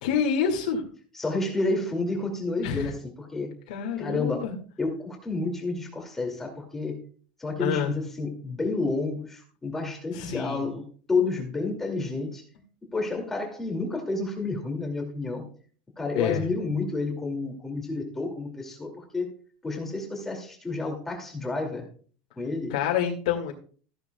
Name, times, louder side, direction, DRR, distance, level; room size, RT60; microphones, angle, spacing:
voice 1, 0.0-0.8 2.6-2.9 3.7-4.5 7.6-7.9 10.1-10.6 16.2-16.4 22.7-23.5, left 7 dB, 85° left, 0 dB, 2.0 m, -27 dB
voice 2, 1.1-3.5 4.0-4.5 4.8-7.0 7.4-12.4 12.9-15.4 16.0-19.3 19.6-21.8 22.4-22.7, left 3 dB, 10° left, 2 dB, 2.4 m, -30 dB
15.0 x 10.5 x 2.3 m, 0.43 s
supercardioid pair, 175°, 4 cm